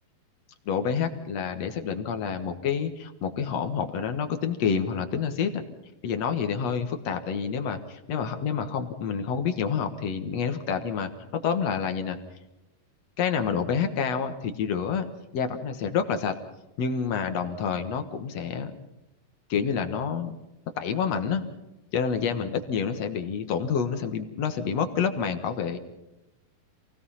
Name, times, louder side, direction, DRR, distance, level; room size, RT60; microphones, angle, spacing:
voice 1, 0.7-5.6 6.0-12.2 13.2-15.1 15.3-16.4 16.8-18.7 19.5-20.4 20.8-21.4 21.9-25.8, left 6 dB, 60° left, 8 dB, 1.9 m, -28 dB
27.5 x 18.5 x 5.7 m, 0.97 s
omnidirectional pair, 4.5 m